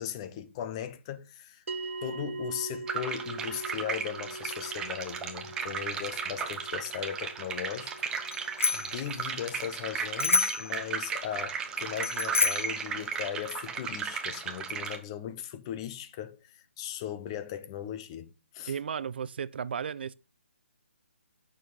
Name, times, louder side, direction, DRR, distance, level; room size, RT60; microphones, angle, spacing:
voice 1, 0.0-1.6 2.0-7.9 8.7-18.7, left 10 dB, 25° left, 0.8 m, -38 dB
sound 1, 1.7-12.2, right 3 dB, 75° right, 1.1 m, -43 dB
sound 2, 2.9-15.0, right 6 dB, 10° right, 0.8 m, -35 dB
Bicycle bell, 8.3-9.0 10.2-10.7 12.0-12.8, left 5 dB, 85° left, 0.5 m, -27 dB
voice 2, 18.7-20.1, right 7 dB, 50° right, 0.6 m, -34 dB
9.1 x 6.4 x 5.5 m
hypercardioid pair, 160°, 7 cm